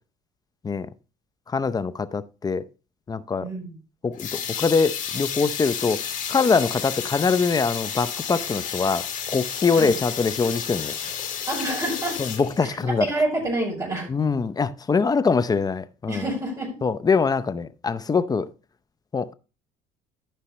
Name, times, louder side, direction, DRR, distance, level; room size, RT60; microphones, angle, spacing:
voice 1, 1.5-2.6 3.1-3.5 4.0-6.0 6.3-11.2 12.2-13.1 14.1-16.3 16.8-18.5 19.1-19.3, left 5 dB, 25° left, 0.6 m, -23 dB
voice 2, 3.4-3.7 9.7-9.9 11.5-12.2 12.6-14.1 16.1-16.7, right 1 dB, 20° right, 4.7 m, -27 dB
sound 1, 4.1-12.9, left 8 dB, 50° left, 2.3 m, -31 dB
13.5 x 5.6 x 3.1 m
supercardioid pair, 95°, 17 cm